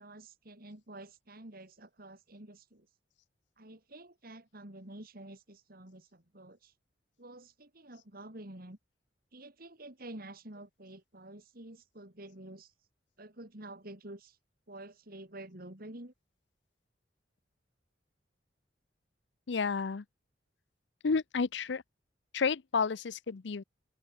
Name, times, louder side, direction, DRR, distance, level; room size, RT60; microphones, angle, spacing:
voice 1, 0.0-2.9 3.6-6.7 7.2-8.8 9.3-12.7 13.2-14.4 14.7-16.1, right 1 dB, 55° right, 3.7 m, -49 dB
voice 2, 19.5-20.0 21.0-21.8 22.3-23.6, left 5 dB, 70° left, 0.6 m, -31 dB
open air
head